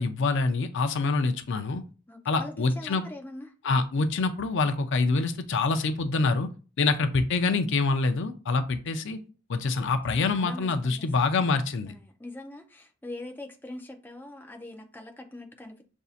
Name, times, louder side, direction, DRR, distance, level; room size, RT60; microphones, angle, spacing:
voice 1, 0.0-1.8 2.3-3.1 3.6-6.5 6.8-9.2 9.5-11.9, left 3 dB, 60° left, 8 dB, 0.5 m, -26 dB
voice 2, 2.1-3.5 7.0-7.1 10.2-11.1 11.8-15.8, left 1 dB, 10° left, 3 dB, 0.4 m, -43 dB
6.7 x 2.6 x 2.4 m, 0.35 s
head